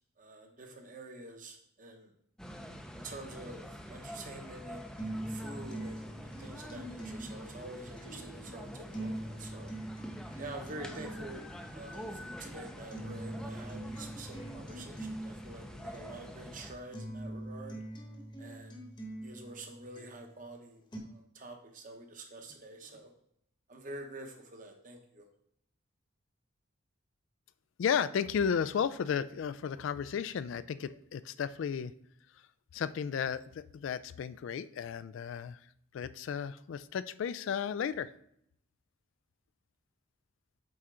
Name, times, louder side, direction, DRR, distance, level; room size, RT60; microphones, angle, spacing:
voice 1, 0.2-2.1 2.9-4.9 5.2-9.7 10.4-11.5 11.7-17.8 18.4-18.8 19.2-23.1 23.7-25.3, right 2 dB, 40° right, 4 dB, 1.0 m, -47 dB
sound 1, 2.4-16.7, equal, 5° left, 0.5 m, -46 dB
sound 2, 5.0-21.0, right 1 dB, 25° left, 1.0 m, -44 dB
voice 2, 27.8-31.9 32.7-35.6 35.9-38.1, left 7 dB, 65° left, 16 dB, 0.3 m, -34 dB
7.9 x 4.3 x 3.7 m, 0.71 s
head